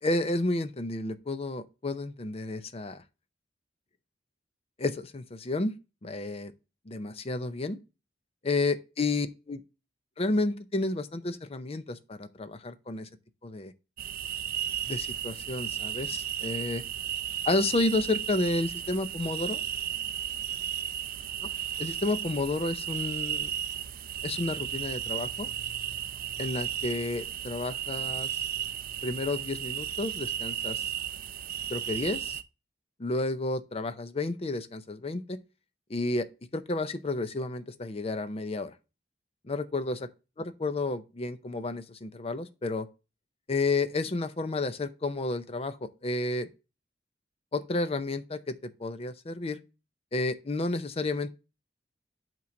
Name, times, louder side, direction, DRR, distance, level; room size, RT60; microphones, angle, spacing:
voice 1, 0.0-3.0 4.8-5.7 6.0-6.5 6.9-7.8 8.5-9.6 10.2-13.1 13.4-13.7 14.9-16.8 17.4-19.6 21.8-23.5 24.2-25.5 26.4-28.3 29.0-30.9 31.7-32.4 33.0-35.4 35.9-36.3 36.5-38.7 39.5-40.0 40.4-42.9 43.5-46.5 47.5-49.6 50.1-51.3, left 2 dB, 35° left, 0.6 m, -31 dB
sound 1, 14.0-32.4, right 10 dB, 55° right, 0.4 m, -34 dB
8.5 x 3.0 x 5.1 m
head